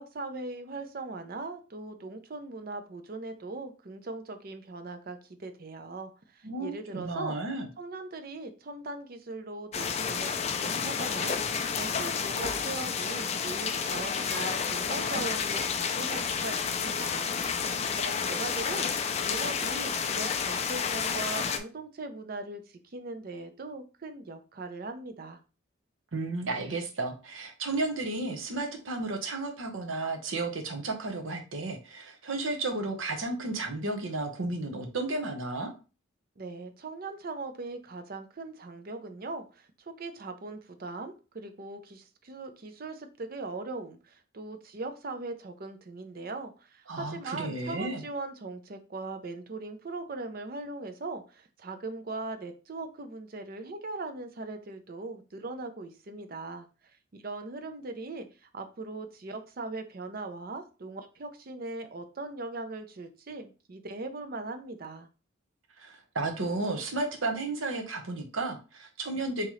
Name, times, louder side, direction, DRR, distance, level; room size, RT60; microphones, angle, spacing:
voice 1, 0.0-7.4 7.8-17.3 17.9-25.4 36.4-56.7 57.2-65.1, right 3 dB, 45° right, 0.5 m, -40 dB
voice 2, 6.4-7.7 26.1-35.7 46.9-48.0 65.8-69.5, right 2 dB, 80° right, 0.9 m, -33 dB
sound 1, 9.7-21.6, left 6 dB, 30° left, 0.3 m, -30 dB
3.7 x 2.9 x 3.1 m
head